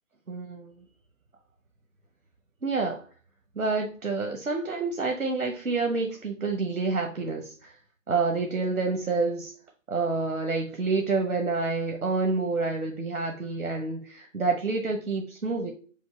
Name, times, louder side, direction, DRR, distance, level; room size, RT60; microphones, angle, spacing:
voice 1, 0.3-0.8 2.6-3.0 3.6-7.8 8.1-9.5 9.9-15.7, right 3 dB, 90° right, 4 dB, 1.0 m, -28 dB
5.3 x 2.1 x 4.3 m, 0.40 s
figure-of-eight pair, 170°, 41 cm